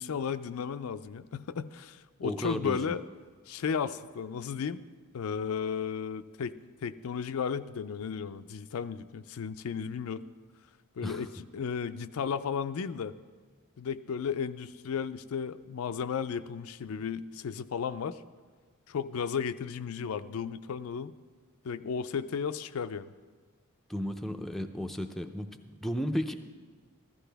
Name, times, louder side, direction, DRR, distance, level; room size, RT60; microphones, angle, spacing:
voice 1, 0.0-3.0 3.5-4.8 5.1-10.2 11.0-13.1 13.8-18.2 18.9-21.1 21.6-23.1, left 6 dB, 75° left, 11 dB, 0.4 m, -34 dB
voice 2, 2.2-3.0 11.0-11.2 23.9-26.3, equal, ahead, 5 dB, 0.5 m, -34 dB
15.0 x 13.0 x 3.4 m, 1.5 s
head